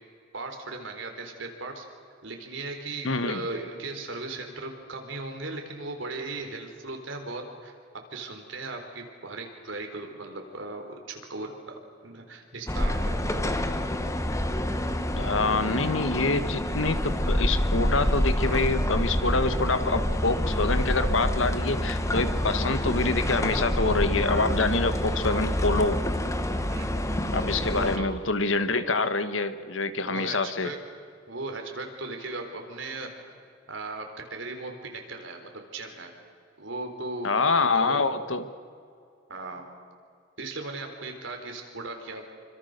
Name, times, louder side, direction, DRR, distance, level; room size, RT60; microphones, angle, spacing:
voice 1, 0.3-1.9 2.2-7.8 8.1-13.4 26.7-27.0 27.7-28.1 30.0-30.8 31.3-33.1 33.7-36.1 36.6-37.3 37.6-38.1 39.3-39.7 40.4-42.4, right 2 dB, 70° right, 3 dB, 4.2 m, -37 dB
voice 2, 3.0-3.4 15.1-26.0 27.3-30.7 37.2-38.5, left 3 dB, 80° left, 11 dB, 1.5 m, -26 dB
sound 1, 12.7-28.0, left 1 dB, 15° left, 1.4 m, -27 dB
27.0 x 25.0 x 6.8 m, 2.3 s
head